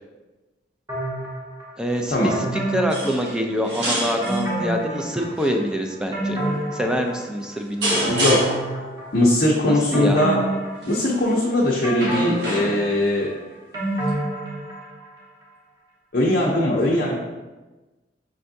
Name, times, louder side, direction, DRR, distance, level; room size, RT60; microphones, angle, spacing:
sound 1, 0.9-1.7 2.3-3.8 4.2-5.5 5.9-7.6 8.0-9.4 9.9-11.4 11.8-15.1 15.4-15.5, right 1 dB, 20° right, 1.1 m, -28 dB
voice 1, 1.8-6.4 6.7-8.0 9.6-10.3, equal, 5° right, 3 dB, 0.4 m, -25 dB
sound 2, 2.9-3.4 3.6-4.5 5.2-5.5 6.4-6.6 7.8-8.7 10.8-11.1 11.9-13.0 14.1-14.2, equal, 70° right, 1.2 m, -27 dB
voice 2, 8.0-8.6 9.1-10.4 10.9-13.3 16.1-17.2, left 1 dB, 55° left, -4 dB, 0.6 m, -20 dB
5.3 x 3.4 x 2.6 m, 1.2 s
head